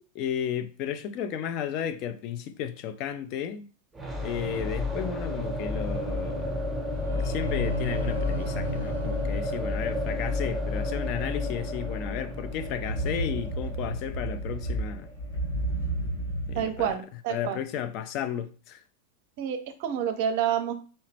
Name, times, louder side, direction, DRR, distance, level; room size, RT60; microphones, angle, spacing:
voice 1, 0.1-3.7 4.2-6.6 7.1-15.1 16.5-17.0 17.3-18.8, left 9 dB, 40° left, 0.4 m, -33 dB
sound 1, 3.9-15.7, left 2 dB, 5° right, 0.8 m, -32 dB
sound 2, 7.0-10.3, right 1 dB, 90° left, 1.0 m, -36 dB
sound 3, 11.6-16.9, right 1 dB, 75° left, 1.3 m, -33 dB
voice 2, 16.5-17.6 19.4-20.7, right 9 dB, 50° right, 0.6 m, -28 dB
4.2 x 2.8 x 3.2 m
figure-of-eight pair, 90°, 0 cm